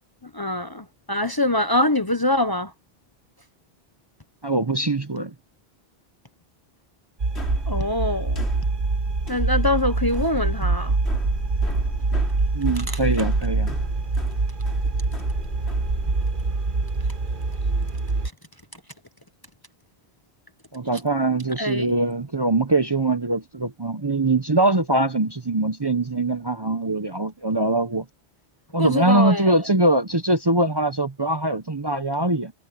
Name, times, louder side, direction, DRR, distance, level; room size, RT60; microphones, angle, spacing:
voice 1, 0.2-2.7 7.7-8.5 9.3-11.0 12.7-13.0 21.6-22.0 28.8-29.6, left 1 dB, 25° left, 0.8 m, -24 dB
voice 2, 4.4-5.3 12.5-13.8 20.7-28.1 28.7-32.5, right 2 dB, 25° right, 0.8 m, -22 dB
sound 1, 7.2-18.3, right 3 dB, 50° right, 1.4 m, -25 dB
sound 2, 7.4-16.5, left 1 dB, 85° left, 5.1 m, -35 dB
omnidirectional pair, 1.1 m